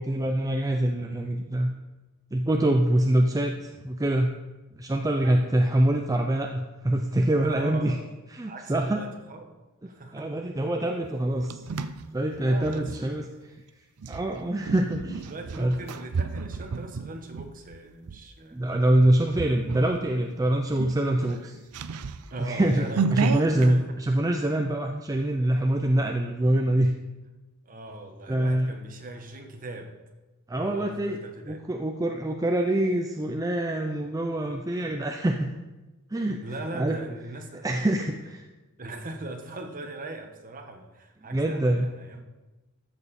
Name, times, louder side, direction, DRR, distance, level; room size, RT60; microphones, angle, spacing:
voice 1, 0.0-1.7 2.3-4.3 4.7-8.0 8.3-9.0 10.1-11.6 12.1-13.2 14.1-15.2 15.6-15.8 18.5-21.6 22.4-22.9 23.1-26.9 28.3-28.7 30.5-31.2 31.5-35.5 36.1-36.4 36.7-37.0 37.6-38.4 41.3-41.9, right 1 dB, 15° right, 3 dB, 0.5 m, -25 dB
voice 2, 7.4-8.0 8.4-9.5 9.9-10.3 12.4-13.3 15.2-18.6 22.3-24.0 27.6-30.0 30.5-31.7 36.4-37.7 37.9-38.2 38.8-42.2, right 2 dB, 40° right, 4 dB, 1.2 m, -40 dB
sound 1, 11.0-13.0 14.0-18.2 18.7-19.0 19.3-20.0 20.3-20.4 20.7-23.7, right 5 dB, 80° right, 0.5 m, -32 dB
13.5 x 6.9 x 4.2 m, 1.1 s
head